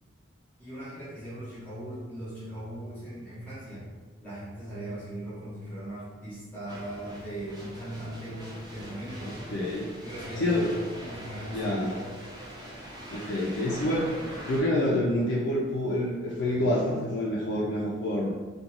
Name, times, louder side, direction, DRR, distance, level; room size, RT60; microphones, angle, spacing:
voice 1, 0.6-3.9 4.2-9.4 10.0-10.7 11.0-12.2, right 1 dB, 10° left, -9 dB, 0.8 m, -39 dB
sound 1, 6.7-14.6, equal, 20° right, 0.5 m, -42 dB
voice 2, 9.5-9.9 10.4-10.7 11.5-11.9 13.1-14.1 14.5-18.3, left 1 dB, 70° left, -4 dB, 0.4 m, -27 dB
2.4 x 2.2 x 2.9 m, 1.3 s
head